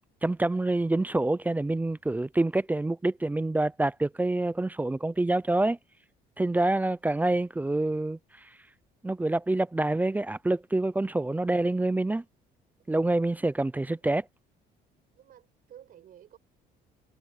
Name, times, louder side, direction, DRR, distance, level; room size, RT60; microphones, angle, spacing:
voice 1, 0.2-5.8 6.4-8.2 9.0-12.2 12.9-14.3, right 2 dB, 10° right, 0.4 m, -26 dB
voice 2, 15.1-16.4, right 10 dB, 60° right, 6.1 m, -52 dB
cardioid pair, 110°, 17 cm